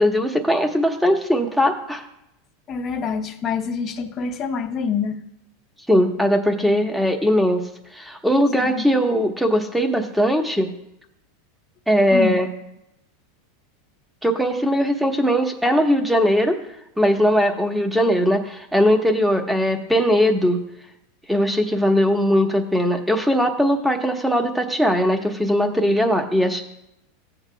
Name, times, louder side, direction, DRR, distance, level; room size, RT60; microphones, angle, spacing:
voice 1, 0.0-2.0 5.9-7.6 7.9-10.7 11.9-12.5 14.2-16.6 17.0-20.6 21.3-26.6, equal, ahead, 4 dB, 1.3 m, -19 dB
voice 2, 2.7-5.2 8.6-8.9 12.1-12.4, left 6 dB, 30° left, 2 dB, 0.9 m, -26 dB
15.5 x 8.0 x 2.3 m, 0.82 s
supercardioid pair, 125°, 0 cm